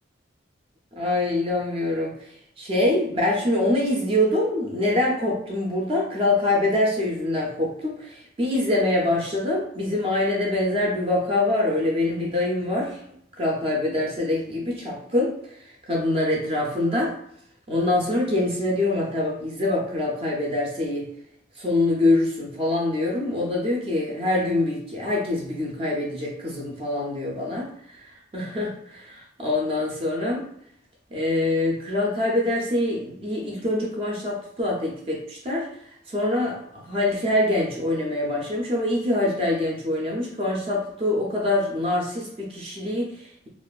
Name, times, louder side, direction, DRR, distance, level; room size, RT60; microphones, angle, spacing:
voice 1, 0.9-13.0 13.4-15.6 15.9-17.1 17.7-21.1 21.6-30.4 31.1-43.5, left 1 dB, 30° right, -2 dB, 0.4 m, -25 dB
2.4 x 2.2 x 2.3 m, 0.72 s
head